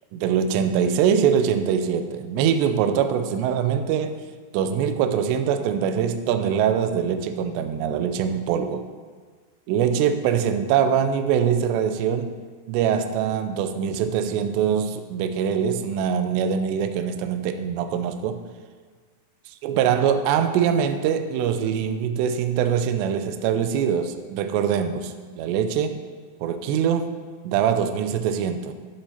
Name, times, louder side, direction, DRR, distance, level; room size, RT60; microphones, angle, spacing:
voice 1, 0.1-4.2 4.5-8.8 9.7-12.4 12.7-18.4 19.6-26.0 26.4-27.1 27.4-28.7, right 8 dB, 85° right, 9 dB, 2.5 m, -23 dB
11.5 x 10.5 x 2.9 m, 1.6 s
omnidirectional pair, 5.6 m